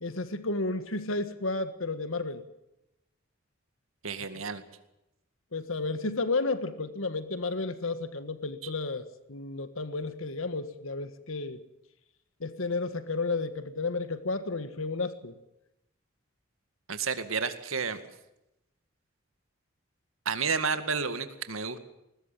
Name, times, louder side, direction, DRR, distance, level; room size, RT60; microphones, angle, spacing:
voice 1, 0.0-2.4 5.5-11.6 12.4-15.4, left 3 dB, 85° left, 11 dB, 1.6 m, -32 dB
voice 2, 4.0-4.6 8.6-8.7 16.9-18.0 20.3-21.8, right 5 dB, 90° right, 10 dB, 2.1 m, -31 dB
21.5 x 20.0 x 7.5 m, 0.89 s
head